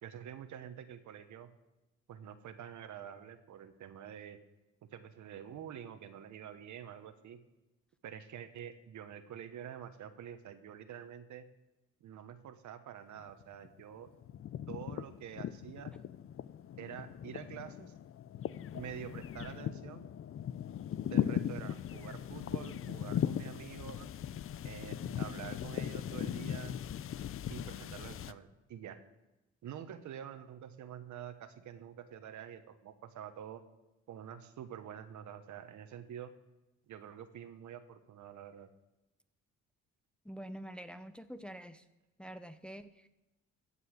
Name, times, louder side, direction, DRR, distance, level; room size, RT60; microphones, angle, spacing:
voice 1, 0.0-1.5 2.1-4.4 4.9-7.4 8.0-11.5 12.0-14.1 14.7-15.9 16.8-17.9 18.7-20.1 21.1-24.1 24.6-26.8 27.5-29.0 29.6-33.6 34.1-36.3 36.9-38.7, right 9 dB, 70° right, 10 dB, 1.2 m, -47 dB
sound 1, 13.2-13.8 14.1-28.3, left 10 dB, 45° left, 0.5 m, -39 dB
voice 2, 40.2-41.8 42.2-43.1, equal, 5° left, 10 dB, 0.7 m, -46 dB
15.0 x 5.6 x 8.0 m, 1.0 s
cardioid pair, 90°, 30 cm